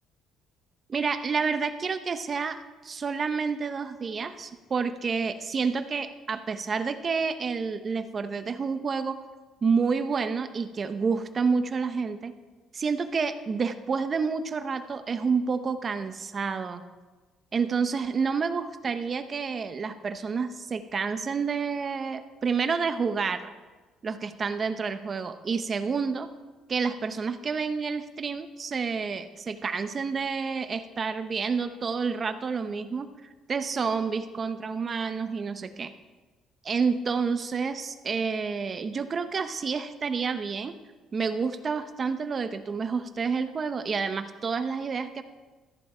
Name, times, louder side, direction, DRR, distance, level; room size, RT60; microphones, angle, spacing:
voice 1, 0.9-9.2 9.6-12.3 12.7-16.8 17.5-23.5 24.0-26.3 26.7-33.1 33.5-35.9 36.6-40.7 41.1-45.2, right 5 dB, 35° right, 10 dB, 0.8 m, -29 dB
14.0 x 10.5 x 5.0 m, 1.3 s
cardioid pair, 125°, 0 cm